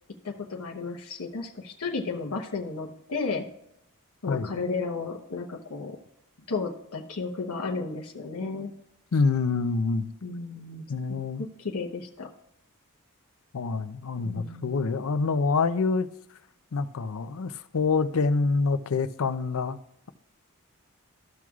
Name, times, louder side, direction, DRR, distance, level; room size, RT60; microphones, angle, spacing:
voice 1, 0.2-3.4 4.2-6.0 6.5-8.7 10.2-10.8 11.4-12.3 14.2-14.7, left 4 dB, 90° left, 0.9 m, -33 dB
voice 2, 4.3-4.6 9.1-10.1 10.9-11.4 13.5-16.1 16.7-19.8, left 4 dB, 65° left, 0.5 m, -26 dB
14.0 x 6.2 x 2.4 m
head